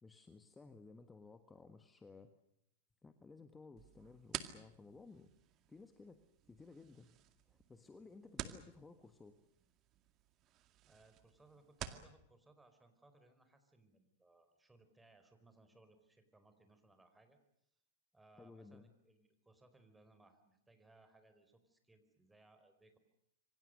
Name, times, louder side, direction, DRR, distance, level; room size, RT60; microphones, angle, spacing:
voice 1, 0.0-2.3 3.0-5.3 5.7-6.2 6.5-7.2 7.5-9.4 18.4-18.9, left 3 dB, 10° left, 9 dB, 1.6 m, -57 dB
sound 1, 3.8-12.1, right 11 dB, 40° right, 2.1 m, -51 dB
voice 2, 10.8-17.4 18.1-23.0, right 2 dB, 10° right, 8 dB, 4.6 m, -66 dB
27.0 x 24.5 x 6.6 m, 0.77 s
hypercardioid pair, 105°, 0 cm